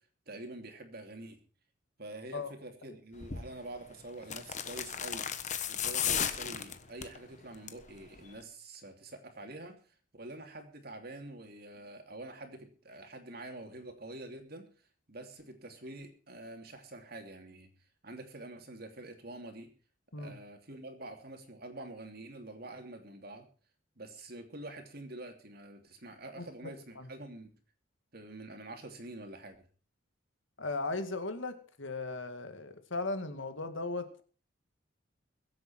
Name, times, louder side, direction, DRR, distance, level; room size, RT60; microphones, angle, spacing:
voice 1, 0.3-1.4 2.0-9.7 10.1-14.6 15.1-17.7 18.0-19.7 20.2-23.5 24.0-27.5 28.1-29.6, right 2 dB, 50° right, 3.0 m, -46 dB
sound 1, 3.2-3.5 4.2-7.2 7.5-7.9 8.2-8.3, left 8 dB, 35° left, 1.4 m, -34 dB
voice 2, 30.6-34.2, left 3 dB, 70° left, 2.1 m, -37 dB
23.0 x 8.4 x 4.5 m
head